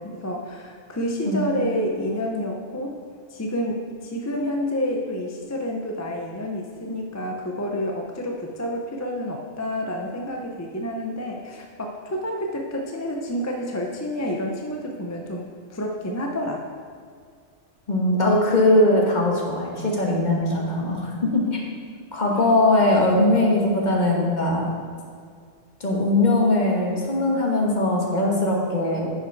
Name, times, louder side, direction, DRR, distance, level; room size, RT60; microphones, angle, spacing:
voice 1, 0.0-3.0 3.3-16.6, equal, 20° left, 1 dB, 0.5 m, -29 dB
voice 2, 17.9-21.6 22.1-24.7 25.8-29.1, left 1 dB, 45° left, -2 dB, 1.4 m, -20 dB
9.8 x 5.4 x 4.6 m, 2.1 s
omnidirectional pair, 1.1 m